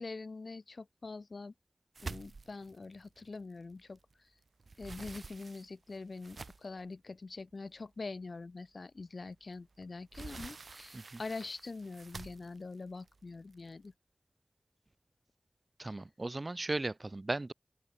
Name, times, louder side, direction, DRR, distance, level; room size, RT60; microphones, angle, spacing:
voice 1, 0.0-1.5 2.0-4.0 4.8-13.9 15.9-16.0, left 3 dB, 70° left, 0.3 m, -44 dB
sound 1, 1.9-4.1 4.5-6.9 7.5-7.6 8.1-8.2 9.6-13.9, right 3 dB, 80° right, 0.7 m, -48 dB
voice 2, 15.8-17.5, right 2 dB, 40° right, 0.8 m, -36 dB
open air
wide cardioid pair, 60°, 0 cm